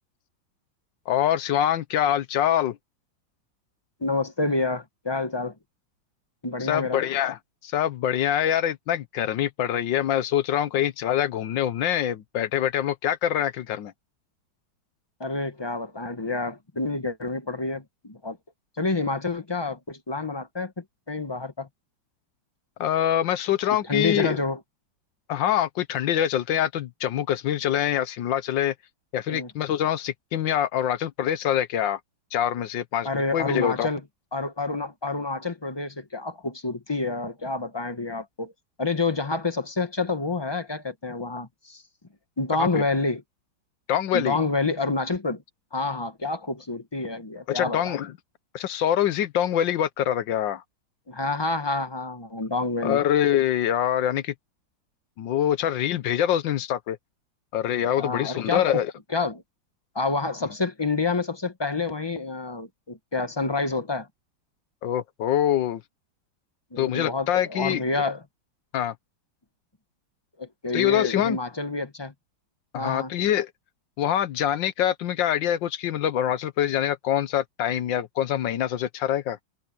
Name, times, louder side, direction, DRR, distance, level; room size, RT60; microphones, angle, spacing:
voice 1, 1.1-2.8 6.6-13.9 22.8-24.4 25.3-28.7 29.1-32.0 32.3-33.9 42.5-42.8 43.9-44.4 47.5-48.1 48.5-50.6 52.8-54.3 55.2-57.0 57.5-58.9 64.8-65.8 66.8-68.0 68.7-68.9 70.7-71.4 72.7-73.5 74.0-79.4, left 10 dB, 75° left, 1.5 m, -25 dB
voice 2, 4.0-5.5 6.4-7.0 15.2-18.4 18.8-21.7 23.9-24.6 29.3-29.5 33.0-34.0 34.3-38.5 38.8-41.8 42.4-43.2 44.1-45.4 45.7-48.0 51.1-53.0 58.0-58.6 59.1-59.4 59.9-64.1 66.7-68.2 70.4-72.1 72.8-73.1, left 3 dB, 20° left, 0.7 m, -28 dB
omnidirectional pair, 2.1 m